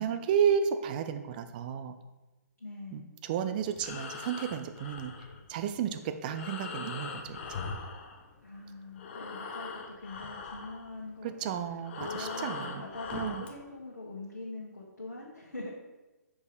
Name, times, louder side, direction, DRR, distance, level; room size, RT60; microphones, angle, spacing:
voice 1, 0.0-1.9 2.9-3.0 3.3-5.1 5.5-7.4 11.2-12.8 13.1-13.4, right 8 dB, 30° right, 9 dB, 0.5 m, -32 dB
voice 2, 2.6-3.1 8.4-15.7, left 2 dB, 70° left, -5 dB, 1.6 m, -43 dB
Breathing, 3.6-8.6 8.9-13.6, left 4 dB, 40° left, 0.8 m, -41 dB
6.2 x 4.8 x 4.9 m, 1.1 s
figure-of-eight pair, 130°, 9 cm